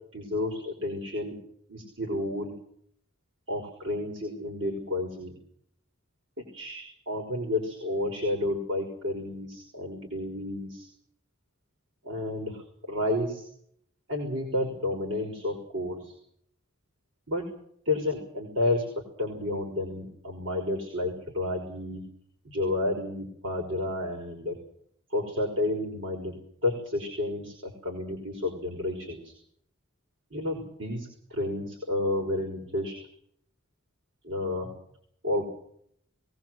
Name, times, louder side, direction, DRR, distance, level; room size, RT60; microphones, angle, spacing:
voice 1, 0.1-1.4 1.7-2.6 3.5-5.4 6.4-10.9 12.0-13.5 14.1-16.2 17.3-17.5 17.9-18.9 19.2-22.1 22.4-24.6 25.1-29.3 30.3-32.9 34.2-34.7 35.2-35.5, left 1 dB, 80° right, 1 dB, 5.8 m, -31 dB
22.5 x 19.0 x 7.9 m, 0.67 s
head